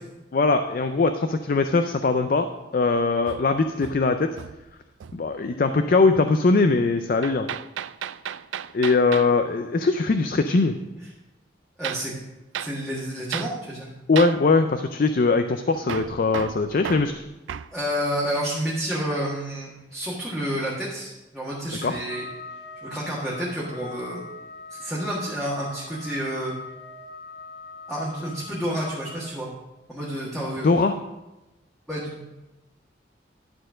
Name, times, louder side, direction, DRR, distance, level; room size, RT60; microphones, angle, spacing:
voice 1, 0.3-2.5 2.7-4.4 5.1-7.5 8.7-10.8 14.1-17.2 21.8-22.0 30.6-30.9, left 3 dB, 45° left, 8 dB, 0.4 m, -21 dB
Hammer, 3.3-4.7 5.0-5.3 7.2-9.3 11.8-12.1 12.5-12.8 13.3-13.6 14.2-14.4 15.9-17.7, right 9 dB, 80° right, 0.3 m, -34 dB
voice 2, 11.8-12.1 12.6-13.9 17.7-22.2 22.8-24.2 24.7-26.5 27.9-29.5 29.9-30.7 31.9-32.2, equal, ahead, -7 dB, 1.6 m, -29 dB
Trumpet, 22.1-29.4, left 3 dB, 70° left, 2.5 m, -42 dB
11.5 x 4.4 x 6.2 m, 1.0 s
head